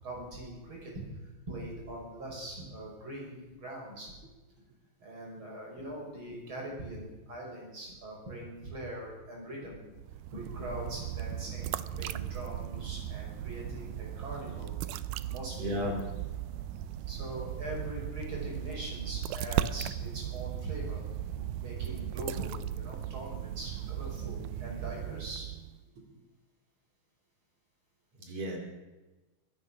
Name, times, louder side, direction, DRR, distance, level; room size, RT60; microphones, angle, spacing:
voice 1, 0.0-4.1 5.0-9.8 10.3-15.0 15.3-15.8 17.1-21.0 21.3-25.5, right 1 dB, 40° right, -2 dB, 6.2 m, -42 dB
sound 1, 9.9-25.8, right 12 dB, 90° right, 2.1 m, -37 dB
voice 2, 15.6-16.0 16.3-16.4 26.0-26.1 28.2-28.6, left 1 dB, 60° right, 1 dB, 3.7 m, -34 dB
23.5 x 9.8 x 6.3 m, 1.2 s
omnidirectional pair, 3.5 m